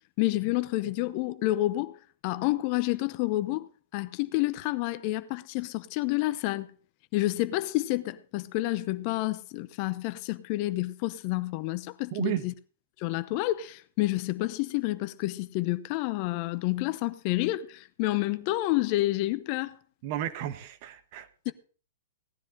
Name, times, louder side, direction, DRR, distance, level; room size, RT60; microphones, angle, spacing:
voice 1, 0.2-6.7 7.1-12.5 13.0-19.8 21.4-21.5, left 17 dB, 45° left, 0.8 m, -29 dB
voice 2, 12.1-12.4 20.0-21.5, right 12 dB, 45° right, 1.3 m, -33 dB
17.5 x 10.5 x 3.9 m
hypercardioid pair, 120°, 0 cm